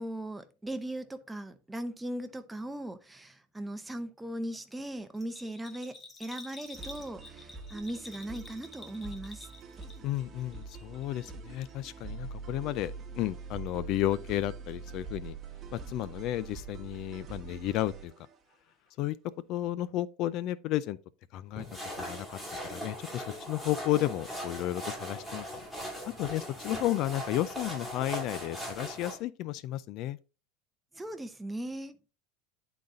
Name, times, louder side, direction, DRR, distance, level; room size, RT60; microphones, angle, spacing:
voice 1, 0.0-9.5 30.9-31.9, right 1 dB, 10° right, 0.7 m, -38 dB
Bell, 5.1-10.2 10.5-11.3 11.6-11.7, left 2 dB, 25° left, 1.6 m, -49 dB
sound 1, 6.7-18.5, right 4 dB, 25° right, 1.2 m, -45 dB
voice 2, 10.0-15.3 15.7-18.3 19.0-19.2 19.5-21.0 21.3-21.6 22.0-22.4 22.7-25.7 26.2-30.2, left 14 dB, 50° left, 0.4 m, -33 dB
sound 2, 21.6-29.2, equal, 10° left, 2.5 m, -40 dB
10.0 x 4.0 x 3.7 m
supercardioid pair, 140°, 0 cm